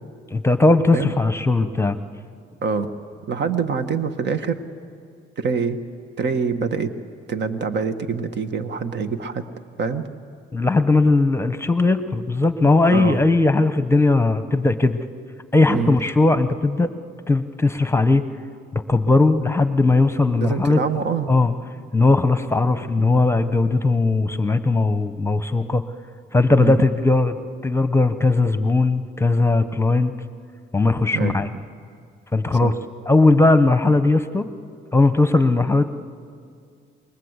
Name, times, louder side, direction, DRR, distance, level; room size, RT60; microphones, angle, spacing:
voice 1, 0.3-2.0 10.5-15.0 15.5-16.9 17.3-18.3 18.7-20.8 21.3-21.5 21.9-25.8 26.3-27.3 27.6-30.1 30.7-31.5 32.3-32.7 33.1-34.5 34.9-35.8, left 3 dB, 15° left, 10 dB, 1.1 m, -18 dB
voice 2, 3.3-4.6 5.4-5.8 6.2-6.9 7.3-9.5 9.8-10.1 12.6-13.2 15.7-15.9 20.4-21.3 26.6-26.8 31.1-31.4 32.6-32.7, right 5 dB, 60° right, 9 dB, 1.6 m, -25 dB
28.0 x 22.0 x 8.2 m, 2.2 s
cardioid pair, 90°, 20 cm